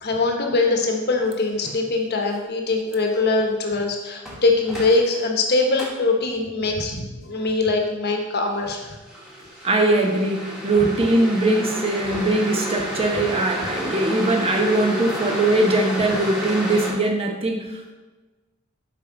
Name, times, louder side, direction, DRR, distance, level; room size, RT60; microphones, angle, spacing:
voice 1, 0.0-8.9, left 3 dB, 50° left, 2 dB, 1.1 m, -22 dB
sound 1, 1.6-1.8 4.3-5.2 5.8-5.9 9.1-16.9, equal, ahead, 1.7 m, -30 dB
voice 2, 9.6-17.9, right 2 dB, 30° right, 3 dB, 0.9 m, -21 dB
7.3 x 5.2 x 3.9 m, 1.2 s
head